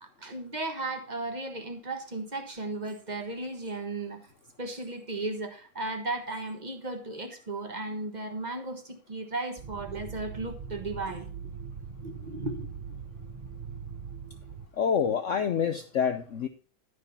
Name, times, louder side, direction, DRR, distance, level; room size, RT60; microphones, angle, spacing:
voice 1, 0.0-4.3 4.6-11.5 12.0-12.7, right 2 dB, 25° right, 1.2 m, -35 dB
sound 1, 9.6-14.7, right 6 dB, 75° right, 0.4 m, -41 dB
voice 2, 14.8-16.5, left 7 dB, 80° left, 0.6 m, -27 dB
11.5 x 4.9 x 5.4 m
omnidirectional pair, 2.1 m